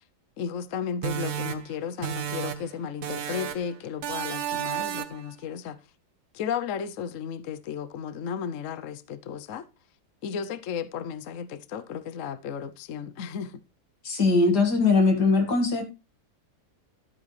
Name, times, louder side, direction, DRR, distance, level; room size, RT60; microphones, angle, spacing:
voice 1, 0.4-5.8 6.3-9.7 10.2-13.5, left 7 dB, 60° left, 1.0 m, -34 dB
sound 1, 1.0-2.7 3.0-3.7 4.0-5.3, right 10 dB, 70° right, 1.4 m, -32 dB
voice 2, 14.0-15.8, left 3 dB, 80° left, 2.6 m, -21 dB
12.0 x 8.9 x 3.2 m
omnidirectional pair, 1.7 m